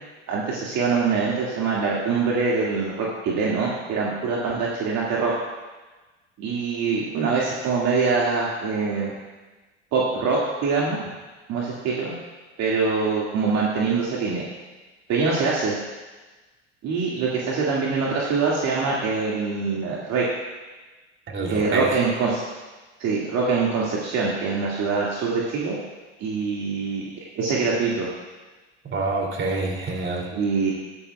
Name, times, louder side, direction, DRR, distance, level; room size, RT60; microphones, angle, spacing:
voice 1, 0.3-5.3 6.4-9.1 9.9-11.0 11.5-12.2 12.6-14.4 15.1-15.8 16.8-20.3 21.5-22.4 23.0-25.8 26.2-28.1 30.3-30.7, right 4 dB, 50° right, -5 dB, 2.2 m, -24 dB
voice 2, 21.3-21.8 28.8-30.3, right 3 dB, 35° right, 0 dB, 2.8 m, -26 dB
14.0 x 12.5 x 2.3 m, 1.2 s
hypercardioid pair, 80°, 35 cm